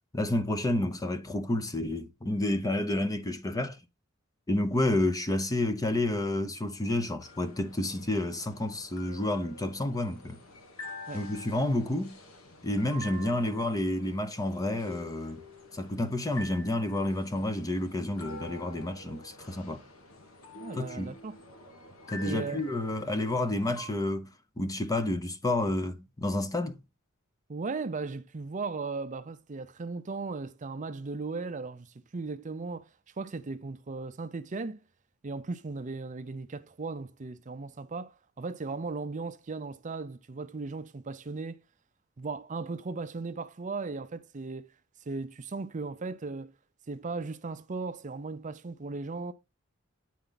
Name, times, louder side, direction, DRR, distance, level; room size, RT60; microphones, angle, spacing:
voice 1, 0.1-3.8 4.5-10.4 11.1-12.2 12.6-15.4 15.7-19.8 20.7-21.2 22.1-24.3 24.6-26.8, left 1 dB, 15° left, 0.7 m, -30 dB
sound 1, 7.2-23.9, left 1 dB, 80° left, 1.5 m, -47 dB
voice 2, 20.5-21.4 22.2-22.6 27.5-32.9 33.2-34.8 35.2-41.6 42.2-44.7 45.1-46.5 46.9-49.3, right 3 dB, 35° right, 0.5 m, -37 dB
9.4 x 4.3 x 3.9 m
head